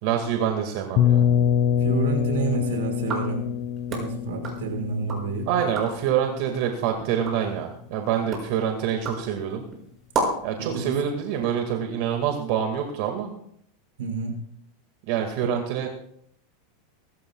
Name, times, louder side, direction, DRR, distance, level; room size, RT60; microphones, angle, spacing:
voice 1, 0.0-1.3 5.5-9.6 10.4-13.4 15.1-15.9, right 8 dB, 60° right, 4 dB, 2.0 m, -26 dB
sound 1, 1.0-6.7, left 9 dB, 45° left, 1.1 m, -25 dB
voice 2, 1.8-3.5 3.9-5.5 10.6-11.0 14.0-14.4, right 5 dB, 85° right, 2 dB, 5.3 m, -29 dB
sound 2, 3.0-5.3 5.6-6.1 6.6-10.6, right 2 dB, 30° right, 6.3 m, -34 dB
24.0 x 13.5 x 2.4 m, 0.70 s
supercardioid pair, 145°, 0 cm